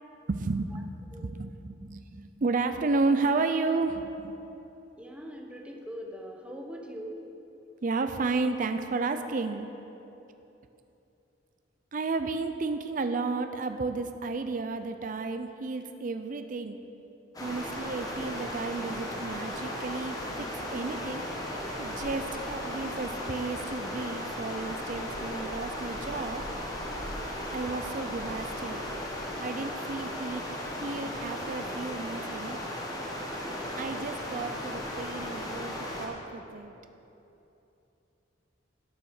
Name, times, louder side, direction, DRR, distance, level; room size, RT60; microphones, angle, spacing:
voice 1, 0.3-4.3 7.8-9.7 11.9-16.8 17.4-21.2 21.8-26.4 27.5-28.8 29.4-30.4 30.8-32.6 33.8-36.7, right 3 dB, 45° right, 8 dB, 0.5 m, -32 dB
voice 2, 5.0-7.2, equal, 5° right, 0 dB, 1.1 m, -41 dB
sound 1, 17.3-36.1, left 1 dB, 20° left, 1.5 m, -36 dB
12.0 x 6.8 x 6.5 m, 2.9 s
head